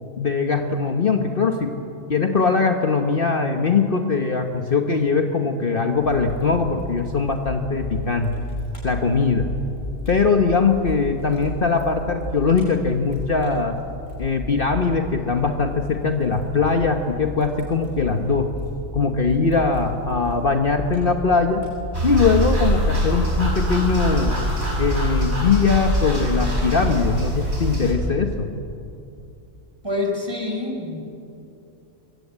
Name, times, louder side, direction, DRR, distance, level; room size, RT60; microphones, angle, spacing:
voice 1, 0.2-1.7 2.1-8.5 8.8-9.5 10.1-13.8 14.2-18.5 18.9-21.7 22.0-24.4 24.8-28.5, left 4 dB, 45° left, 5 dB, 1.3 m, -21 dB
Fire, 6.0-25.2, left 1 dB, 75° left, 7.2 m, -34 dB
sound 1, 21.9-27.9, right 1 dB, 55° right, 6.1 m, -23 dB
voice 2, 29.8-31.0, left 2 dB, 20° right, 2 dB, 4.5 m, -26 dB
24.0 x 23.5 x 8.7 m, 2.7 s
omnidirectional pair, 1.3 m